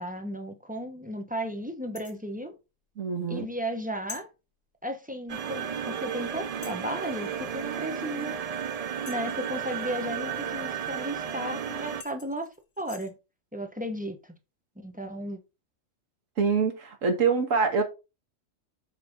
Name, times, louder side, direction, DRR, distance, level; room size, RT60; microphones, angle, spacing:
voice 1, 0.0-2.6 3.3-4.3 4.8-8.4 9.0-12.5 12.8-13.1 13.5-14.2 14.8-15.4, equal, 10° right, 0.8 m, -34 dB
sound 1, 2.0-2.3 4.1-4.3 5.7-5.8 6.6-6.9 9.1-9.5 11.5-11.6 12.0-13.1, left 5 dB, 60° left, 1.6 m, -45 dB
voice 2, 3.0-3.5 16.4-17.8, right 5 dB, 85° right, 1.8 m, -25 dB
sound 2, 5.3-12.0, right 7 dB, 60° right, 0.4 m, -33 dB
8.0 x 5.0 x 3.5 m
omnidirectional pair, 1.3 m